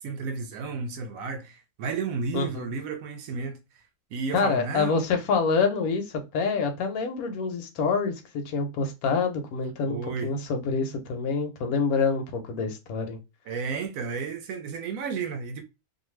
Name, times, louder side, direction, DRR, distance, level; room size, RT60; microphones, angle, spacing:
voice 1, 0.0-3.6 4.1-5.0 9.9-10.3 13.5-15.6, right 5 dB, 70° right, 0.9 m, -32 dB
voice 2, 2.3-2.7 4.3-13.2, left 5 dB, 80° left, 1.1 m, -27 dB
2.6 x 2.4 x 3.0 m
omnidirectional pair, 1.5 m